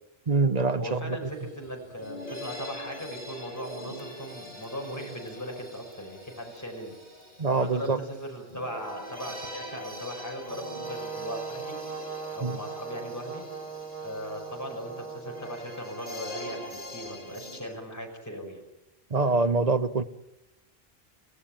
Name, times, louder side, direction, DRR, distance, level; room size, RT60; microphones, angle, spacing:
voice 1, 0.3-1.2 7.4-8.0 12.4-12.6 19.1-20.0, right 3 dB, 40° right, 1.1 m, -25 dB
voice 2, 0.8-6.9 7.6-11.8 12.3-13.4 14.0-18.6, equal, 15° left, 5.6 m, -38 dB
sound 1, 1.3-1.4 1.6-17.6, left 1 dB, 40° left, 6.5 m, -43 dB
Brass instrument, 10.5-15.7, right 5 dB, 60° right, 5.5 m, -39 dB
29.5 x 17.0 x 8.9 m
omnidirectional pair, 1.0 m